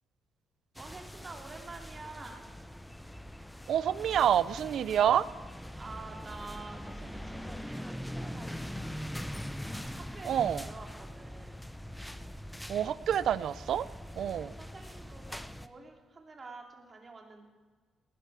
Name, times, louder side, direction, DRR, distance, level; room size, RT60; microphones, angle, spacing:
sound 1, 0.8-15.7, equal, 5° left, 0.6 m, -42 dB
voice 1, 0.8-2.4 5.8-9.2 9.9-11.6 14.3-17.5, right 3 dB, 35° right, 2 dB, 2.6 m, -48 dB
voice 2, 3.7-5.3 10.2-10.7 12.7-13.9 14.2-14.5, right 9 dB, 70° right, 17 dB, 0.5 m, -27 dB
19.0 x 11.5 x 4.8 m, 1.5 s
cardioid pair, 90°, 0 cm